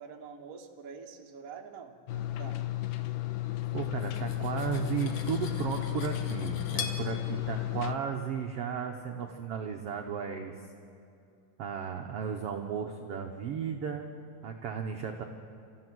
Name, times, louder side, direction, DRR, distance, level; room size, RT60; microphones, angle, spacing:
voice 1, 0.0-2.6, right 6 dB, 45° right, 2 dB, 1.1 m, -46 dB
sound 1, 2.1-7.9, left 16 dB, 80° left, 2.3 m, -34 dB
voice 2, 3.7-10.7 11.6-14.1 14.4-15.2, right 7 dB, 70° right, 3 dB, 1.5 m, -34 dB
Cutlery silverware, 3.8-7.0, left 6 dB, 55° left, 1.9 m, -42 dB
29.0 x 14.5 x 6.2 m, 2.5 s
omnidirectional pair, 3.8 m